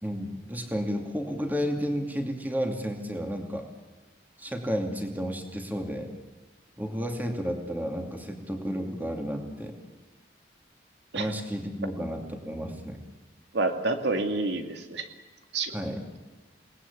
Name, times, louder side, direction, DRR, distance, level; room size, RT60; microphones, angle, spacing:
voice 1, 0.0-3.7 4.4-6.1 6.8-9.7 11.2-13.0 15.7-16.0, equal, 10° right, 3 dB, 2.6 m, -32 dB
voice 2, 13.5-15.1 15.5-15.7, right 3 dB, 75° right, 6 dB, 2.3 m, -28 dB
28.5 x 19.0 x 8.5 m, 1.3 s
head